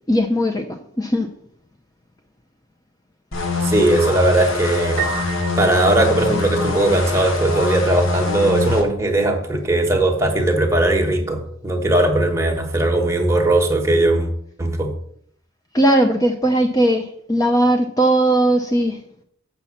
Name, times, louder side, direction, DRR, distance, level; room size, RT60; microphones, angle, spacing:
voice 1, 0.1-1.3 15.7-19.0, right 1 dB, 15° left, 0.5 m, -18 dB
sound 1, 3.3-8.8, left 3 dB, 70° left, 1.4 m, -24 dB
voice 2, 3.6-14.3 14.6-14.9, right 1 dB, 15° right, 1.2 m, -19 dB
Piano, 5.0-6.8, right 9 dB, 35° right, 0.7 m, -30 dB
7.0 x 5.7 x 7.1 m
head